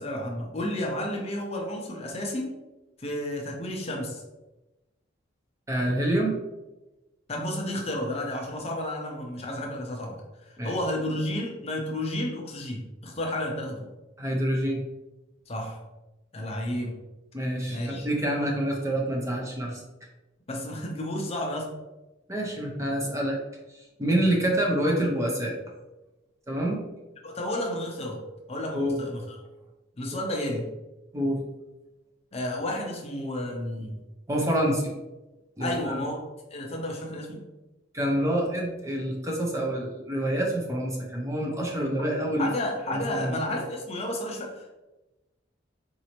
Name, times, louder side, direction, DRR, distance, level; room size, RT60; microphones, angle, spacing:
voice 1, 0.0-2.5 3.0-4.2 7.3-13.9 15.5-15.8 16.3-17.0 17.7-18.1 20.5-21.7 27.2-28.2 28.5-29.4 30.0-30.7 32.3-34.0 35.6-36.2 36.5-37.4 42.0-42.1 42.4-44.7, left 1 dB, 30° left, 0 dB, 0.6 m, -32 dB
voice 2, 5.7-6.4 10.6-10.8 14.2-14.8 17.3-19.8 22.3-23.4 23.7-25.5 26.5-26.8 28.7-29.0 31.1-31.4 34.3-34.9 35.6-36.0 37.9-42.5 42.9-43.4, right 1 dB, 15° right, -1 dB, 0.6 m, -27 dB
4.1 x 2.6 x 2.9 m, 1.0 s
head